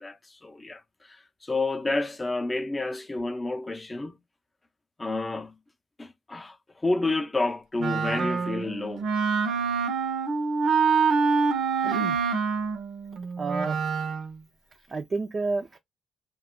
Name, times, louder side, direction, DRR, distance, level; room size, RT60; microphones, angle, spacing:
voice 1, 0.0-4.2 5.0-5.6 6.0-9.1, left 2 dB, 20° left, 0.5 m, -30 dB
Wind instrument woodwind instrument, 7.8-14.3, right 5 dB, 75° right, 0.6 m, -26 dB
voice 2, 11.8-12.2 13.4-13.8 14.9-15.8, right 3 dB, 35° right, 0.4 m, -30 dB
2.2 x 2.1 x 3.6 m
cardioid pair, 90°, 0 cm